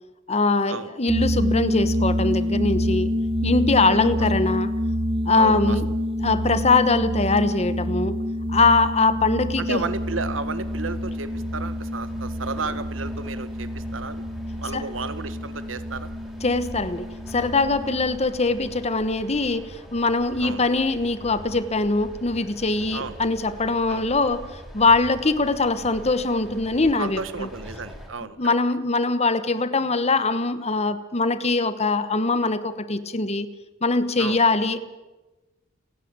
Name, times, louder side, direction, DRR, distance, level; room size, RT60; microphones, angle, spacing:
voice 1, 0.3-3.1 3.4-4.7 5.2-5.9 6.2-8.1 8.5-9.8 14.7-14.8 16.4-24.5 24.7-27.5 28.4-33.5 33.8-34.8, left 3 dB, 35° left, 13 dB, 1.1 m, -22 dB
sound 1, 1.1-18.1, equal, 30° right, 1.0 m, -27 dB
voice 2, 3.8-4.3 5.3-5.8 8.6-8.7 9.6-14.2 14.6-16.1 20.4-20.6 22.9-23.2 23.9-24.1 27.0-28.4 34.2-34.4, right 4 dB, 90° right, 13 dB, 1.3 m, -33 dB
sound 2, 9.7-28.1, equal, 5° right, 4.2 m, -43 dB
30.0 x 10.0 x 8.8 m, 1.1 s
head